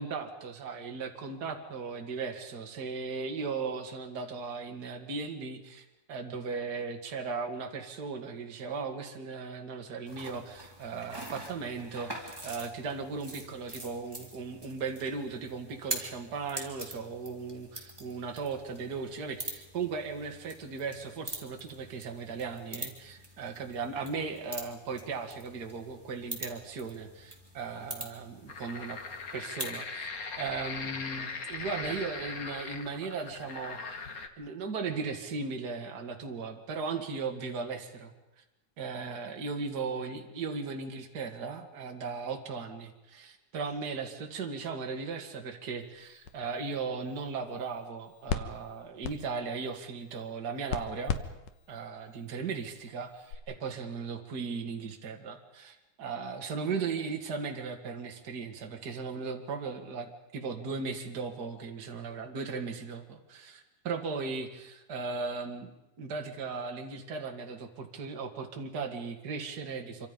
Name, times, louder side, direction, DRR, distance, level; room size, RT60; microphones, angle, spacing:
voice 1, 0.0-29.0 29.3-30.1 30.4-34.0 34.4-38.1 38.8-51.2 51.7-65.7 66.0-70.1, right 4 dB, 35° right, 3 dB, 2.3 m, -37 dB
sound 1, 10.1-29.8, right 1 dB, 10° right, 2.9 m, -44 dB
sound 2, 28.5-34.3, left 4 dB, 40° left, 1.4 m, -40 dB
sound 3, 45.8-53.4, left 7 dB, 80° left, 2.6 m, -41 dB
26.5 x 25.5 x 5.3 m, 0.94 s
omnidirectional pair, 3.6 m